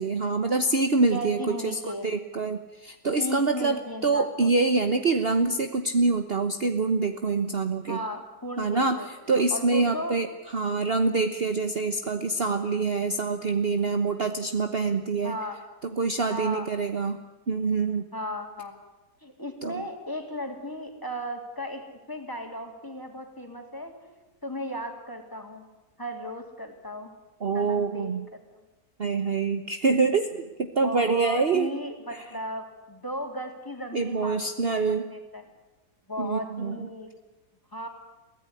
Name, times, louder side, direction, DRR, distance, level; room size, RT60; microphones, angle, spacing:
voice 1, 0.0-8.0 8.6-15.4 15.9-17.2 17.5-18.1 19.6-19.8 27.4-28.2 29.0-31.7 33.9-35.1 36.2-36.8, right 4 dB, 40° right, 7 dB, 1.3 m, -25 dB
voice 2, 1.1-2.1 3.2-4.5 7.9-10.1 15.2-15.6 16.3-16.7 18.1-18.7 19.2-24.1 24.4-25.7 26.0-27.1 27.5-28.2 30.8-35.4 36.1-37.1 37.7-37.9, equal, 15° left, 4 dB, 3.4 m, -36 dB
23.5 x 16.5 x 9.8 m, 1.1 s
omnidirectional pair, 1.7 m